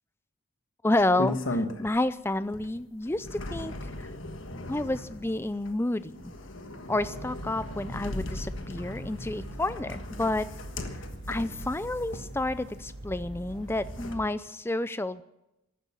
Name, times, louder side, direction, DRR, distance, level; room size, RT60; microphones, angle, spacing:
voice 1, 0.8-4.1 4.7-6.3 6.9-10.4 11.3-15.2, left 2 dB, 10° left, 15 dB, 0.4 m, -30 dB
sound 1, 1.0-2.1 2.5-12.8 13.5-14.2, left 1 dB, 60° left, 1.5 m, -37 dB
sound 2, 7.0-14.2, right 1 dB, 55° right, 1.7 m, -43 dB
14.5 x 11.5 x 7.2 m, 0.89 s
head